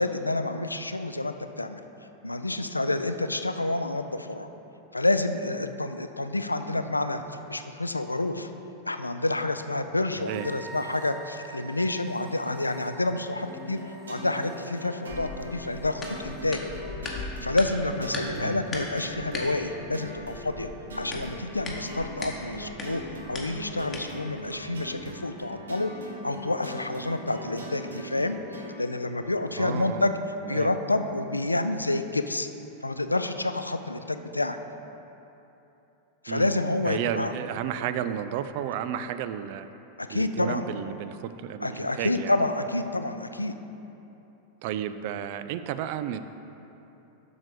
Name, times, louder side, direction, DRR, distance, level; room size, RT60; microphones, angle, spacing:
voice 1, 0.0-1.8 2.2-4.5 4.9-8.5 8.9-16.6 17.4-20.7 21.0-23.0 23.3-25.9 26.2-30.2 30.5-32.5 32.8-34.6 36.2-37.3 40.0-40.7 41.6-43.6, left 2 dB, 85° left, 9 dB, 0.3 m, -28 dB
voice 2, 10.1-10.5 18.3-18.6 29.6-30.1 30.5-30.8 36.3-36.5 36.8-39.7 40.1-42.3 44.6-46.2, right 10 dB, 50° right, 11 dB, 0.3 m, -32 dB
sound 1, 10.2-16.5, right 2 dB, 5° right, 1.4 m, -47 dB
sound 2, 13.4-28.8, equal, 70° right, 1.0 m, -41 dB
sound 3, 15.1-25.1, left 2 dB, 20° left, 1.0 m, -40 dB
7.3 x 6.3 x 4.9 m, 3.0 s
figure-of-eight pair, 90°, 0 cm